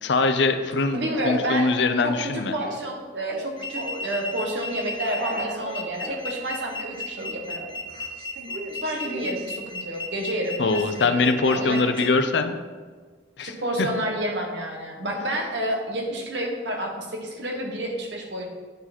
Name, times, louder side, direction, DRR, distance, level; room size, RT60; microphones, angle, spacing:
voice 1, 0.0-1.0 1.2-2.5 10.6-12.6 13.4-13.5 13.8-13.9, left 3 dB, 70° left, 9 dB, 0.6 m, -22 dB
Speech / Cough, 0.7-3.0 3.3-4.1 5.0-6.2 7.1-9.5, right 2 dB, 55° right, 0.8 m, -36 dB
voice 2, 0.9-1.7 2.0-7.6 8.8-12.1 13.4-18.5, right 1 dB, 70° right, 1 dB, 1.4 m, -30 dB
sound 1, 3.6-12.1, left 2 dB, 25° left, 0.9 m, -34 dB
9.2 x 4.7 x 4.3 m, 1.5 s
head